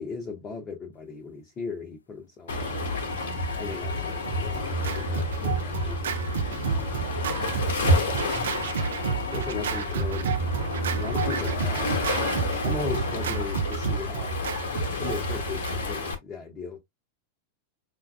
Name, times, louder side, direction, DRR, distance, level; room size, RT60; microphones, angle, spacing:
voice 1, 0.0-2.5 3.6-6.2 9.3-10.4 10.9-11.9 12.6-14.4 15.0-16.8, left 5 dB, 25° left, 0.7 m, -37 dB
Waves surf, 2.5-16.1, left 1 dB, 60° left, 0.8 m, -29 dB
sound 1, 3.0-4.9 8.2-10.0, left 5 dB, 75° left, 0.4 m, -40 dB
Scratching (performance technique), 3.9-16.0, right 7 dB, 65° right, 0.5 m, -31 dB
5.2 x 2.3 x 2.3 m
figure-of-eight pair, 90°, 0 cm